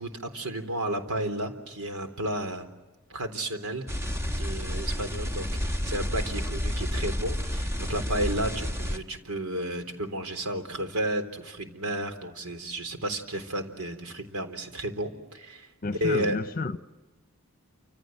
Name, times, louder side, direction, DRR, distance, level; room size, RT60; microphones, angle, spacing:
voice 1, 0.0-2.7 3.1-3.9 4.4-16.4, right 1 dB, 90° right, 8 dB, 3.6 m, -32 dB
sound 1, 3.9-9.0, equal, 10° right, 1.4 m, -30 dB
voice 2, 15.8-16.8, left 3 dB, 40° left, 13 dB, 0.9 m, -31 dB
28.5 x 26.5 x 7.8 m, 1.1 s
head